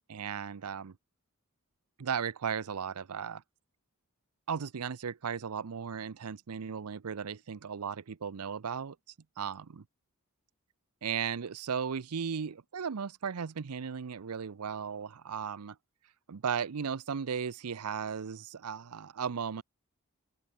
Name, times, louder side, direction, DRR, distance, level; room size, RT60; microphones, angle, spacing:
voice 1, 0.1-0.9 2.0-3.4 4.5-9.0 9.4-9.8 11.0-15.8 16.3-19.6, right 6 dB, 90° right, 0.6 m, -36 dB
open air
head